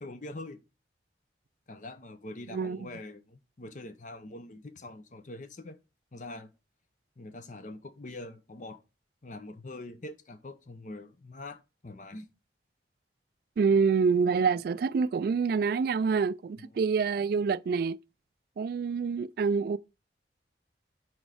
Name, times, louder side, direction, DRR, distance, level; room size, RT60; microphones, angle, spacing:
voice 1, 0.0-0.6 1.7-5.8 6.1-6.5 7.2-8.8 9.2-12.3 16.6-16.8, left 2 dB, 45° left, 0.7 m, -44 dB
voice 2, 13.6-18.0 18.6-19.8, right 5 dB, 55° right, 0.3 m, -26 dB
6.2 x 4.5 x 4.8 m
head